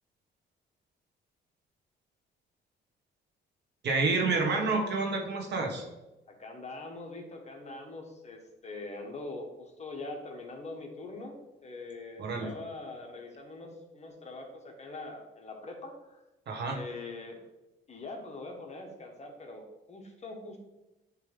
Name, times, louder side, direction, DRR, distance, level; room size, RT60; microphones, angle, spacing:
voice 1, 3.8-5.8 12.2-12.5 16.5-16.8, right 3 dB, 60° right, 1 dB, 1.4 m, -29 dB
voice 2, 6.4-11.3 11.6-16.2 16.7-17.4 17.9-20.6, left 2 dB, 35° left, 2 dB, 1.2 m, -43 dB
8.6 x 3.3 x 3.4 m, 0.98 s
cardioid pair, 90°, 20 cm